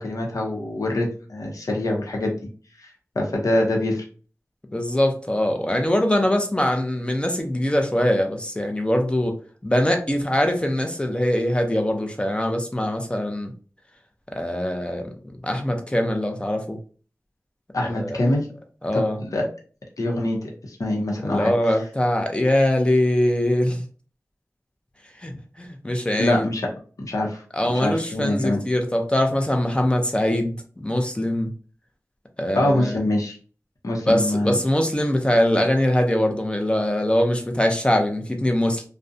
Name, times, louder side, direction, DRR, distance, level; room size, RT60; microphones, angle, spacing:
voice 1, 0.0-2.3 3.2-4.0 17.7-18.5 18.9-19.5 20.0-20.4 20.7-21.8 26.2-26.6 27.1-27.4 27.7-28.6 32.5-33.4 33.8-34.6, left 1 dB, 85° left, 0 dB, 0.6 m, -24 dB
voice 2, 4.7-9.4 9.6-13.5 14.3-15.1 15.4-16.8 17.9-18.2 18.8-19.2 21.2-23.8 25.2-25.3 25.6-26.5 27.5-31.5 32.4-33.0 34.1-38.8, left 1 dB, 20° left, 4 dB, 0.5 m, -22 dB
2.4 x 2.1 x 2.5 m, 0.39 s
wide cardioid pair, 65°, 6 cm